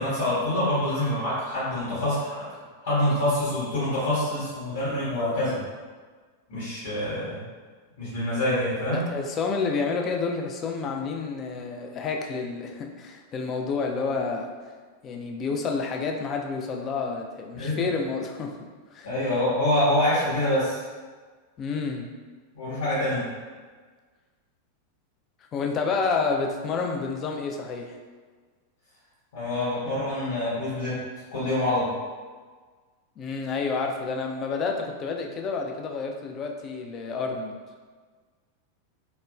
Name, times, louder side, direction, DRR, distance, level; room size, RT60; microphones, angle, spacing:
voice 1, 0.0-2.4 2.8-5.6 6.5-7.4 8.0-9.1 17.5-17.8 19.0-20.8 22.5-23.3 29.3-31.0 31.3-31.9, left 1 dB, 55° left, -11 dB, 1.0 m, -26 dB
voice 2, 8.9-14.5 15.0-18.6 18.9-19.1 21.6-22.1 25.5-28.0 33.2-37.5, left 4 dB, 30° left, 2 dB, 0.3 m, -29 dB
2.9 x 2.1 x 2.3 m, 1.5 s
figure-of-eight pair, 90°, 0 cm